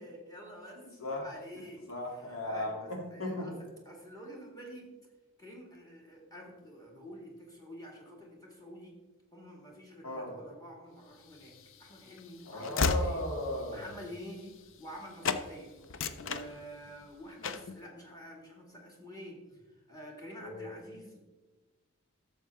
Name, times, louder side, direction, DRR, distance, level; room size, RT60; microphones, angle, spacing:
voice 1, 0.0-1.8 2.4-4.9 5.4-9.0 9.3-13.3 13.7-19.4 19.9-21.2, equal, 15° left, 0 dB, 1.9 m, -48 dB
voice 2, 0.8-1.2 1.5-3.5 10.0-10.3 12.5-13.8 20.4-20.7, left 1 dB, 90° left, -1 dB, 2.6 m, -37 dB
Train / Slam, 11.3-15.0 15.2-15.5 15.8-17.0 17.4-17.8, left 4 dB, 65° left, 0.5 m, -34 dB
12.0 x 7.2 x 3.5 m, 1.2 s
head